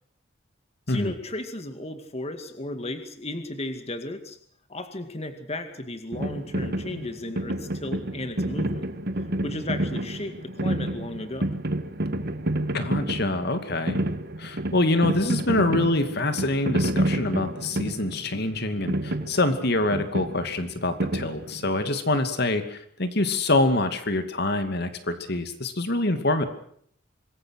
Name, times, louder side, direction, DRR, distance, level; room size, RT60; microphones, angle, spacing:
voice 1, 0.9-4.4 4.7-8.8 9.4-11.6, left 1 dB, 35° left, 7 dB, 2.2 m, -34 dB
sound 1, 6.1-21.9, right 1 dB, 55° right, 1.8 m, -29 dB
voice 2, 12.7-14.0 14.4-26.5, left 2 dB, 55° left, 8 dB, 2.5 m, -25 dB
26.5 x 21.5 x 6.5 m, 0.65 s
head